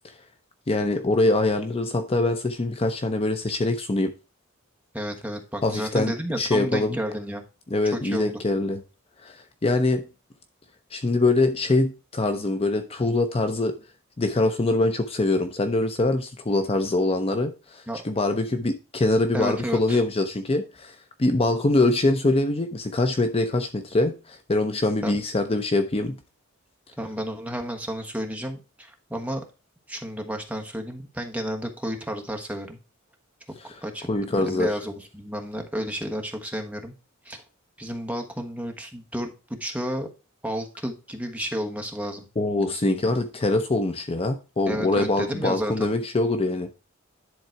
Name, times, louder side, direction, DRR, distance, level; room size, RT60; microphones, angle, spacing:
voice 1, 0.7-4.1 5.6-6.1 6.4-7.0 7.7-8.8 9.2-10.0 10.9-13.7 14.2-26.2 34.1-34.7 42.4-46.7, left 2 dB, 30° left, 0.7 m, -24 dB
voice 2, 4.9-7.4 7.8-8.4 17.9-18.0 19.3-20.0 25.0-25.2 27.0-29.4 29.9-32.8 33.6-36.9 37.2-37.4 37.8-40.1 40.4-42.3 44.7-45.9, equal, 5° right, 1.2 m, -31 dB
10.5 x 3.9 x 4.5 m
head